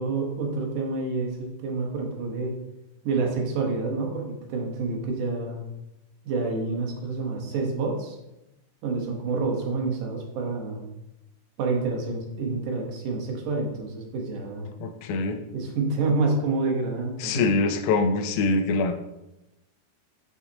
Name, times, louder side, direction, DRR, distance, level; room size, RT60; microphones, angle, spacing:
voice 1, 0.0-2.6 3.0-5.6 6.3-8.2 8.8-10.8 11.6-14.7 15.5-17.4, right 3 dB, 75° right, 1 dB, 2.5 m, -28 dB
voice 2, 14.8-15.4 17.2-18.9, left 3 dB, 80° left, 6 dB, 1.9 m, -24 dB
6.4 x 5.5 x 2.7 m, 0.93 s
omnidirectional pair, 3.7 m